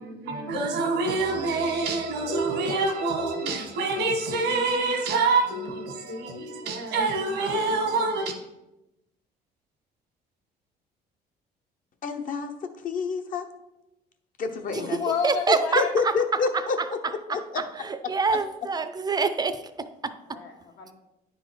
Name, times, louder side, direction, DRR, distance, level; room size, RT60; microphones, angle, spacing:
voice 1, 0.0-8.3, right 3 dB, 90° right, 1.5 m, -26 dB
voice 2, 3.4-3.9 14.4-15.9 20.3-20.9, left 6 dB, 75° left, 1.5 m, -32 dB
voice 3, 12.0-12.5 12.8-13.4 14.4-15.0 15.8-16.8 17.3-17.6, left 4 dB, 55° left, 0.9 m, -27 dB
voice 4, 14.7-20.1, right 4 dB, 25° right, 0.5 m, -27 dB
9.5 x 4.0 x 4.7 m
cardioid pair, 110°, 17 cm